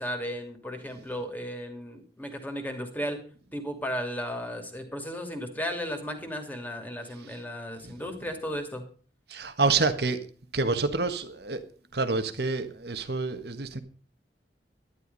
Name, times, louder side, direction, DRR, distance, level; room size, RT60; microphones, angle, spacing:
voice 1, 0.0-3.2 3.5-8.8, equal, 10° left, 2.6 m, -35 dB
voice 2, 9.3-10.2 10.5-11.6 11.9-13.8, right 3 dB, 65° right, 1.5 m, -27 dB
11.5 x 11.5 x 5.4 m
head